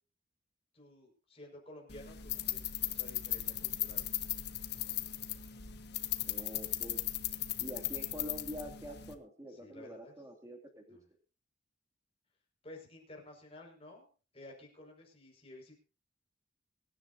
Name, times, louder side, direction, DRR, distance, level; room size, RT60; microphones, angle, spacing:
voice 1, 0.7-4.1 9.5-10.1 10.9-11.1 12.6-14.1 14.3-15.8, left 1 dB, 30° left, 1 dB, 5.4 m, -53 dB
sound 1, 1.9-9.1, left 13 dB, 55° left, 1.4 m, -37 dB
voice 2, 6.3-7.0 7.6-11.0, equal, 15° right, 4 dB, 2.6 m, -46 dB
24.0 x 10.5 x 2.8 m, 0.35 s
head